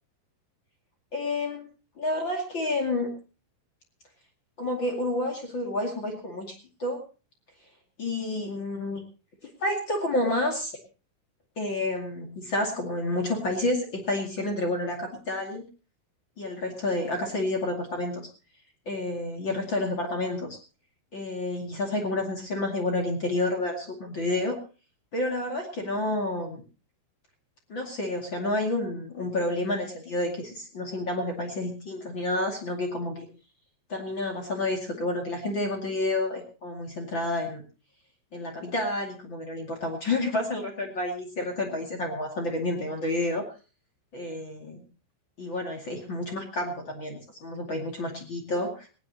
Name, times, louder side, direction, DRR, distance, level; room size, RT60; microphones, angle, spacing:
voice 1, 1.1-1.6 2.0-3.1 4.6-7.0 8.0-9.0 9.6-10.7 11.6-15.6 16.4-18.3 18.9-20.6 21.1-24.6 25.1-26.6 27.7-33.3 33.9-37.6 38.3-43.4 44.1-44.8 45.4-48.9, left 2 dB, 40° left, 2 dB, 1.8 m, -29 dB
19.5 x 17.5 x 2.9 m, 0.34 s
omnidirectional pair, 5.9 m